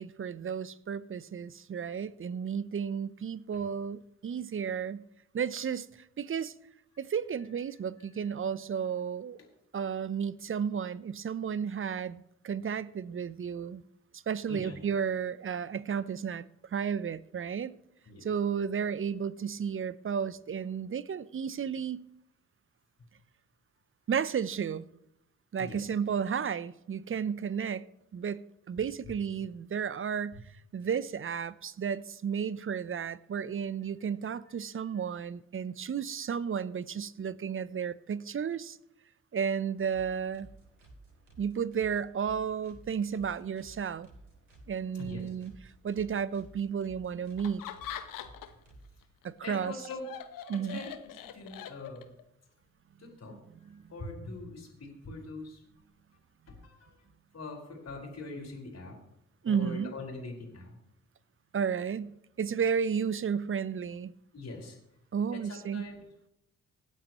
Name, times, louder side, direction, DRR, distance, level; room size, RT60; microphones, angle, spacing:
voice 1, 0.0-5.0 5.3-5.9 6.2-6.5 7.0-9.4 9.7-13.8 14.1-17.7 18.2-22.0 24.1-24.9 25.5-27.9 28.1-30.4 30.7-38.8 39.3-40.5 41.4-44.1 44.7-45.5 45.8-47.6 49.2-49.8 50.5-50.8 53.3-53.4 53.7-53.8 59.4-59.9 61.5-64.1 65.1-65.9, right 7 dB, 35° right, 0.7 m, -33 dB
sound 1, 39.8-48.9, right 2 dB, 90° right, 3.3 m, -55 dB
voice 2, 44.9-45.3 49.4-50.1 50.6-52.1 53.0-53.3 53.9-55.6 56.5-57.0 57.3-59.0 59.4-60.7 64.3-64.8 65.3-66.0, left 3 dB, 45° left, 5.0 m, -43 dB
Laughter, 47.4-48.7 49.0-52.2, left 10 dB, 60° left, 1.2 m, -43 dB
25.5 x 8.8 x 3.1 m
hypercardioid pair, 40°, 37 cm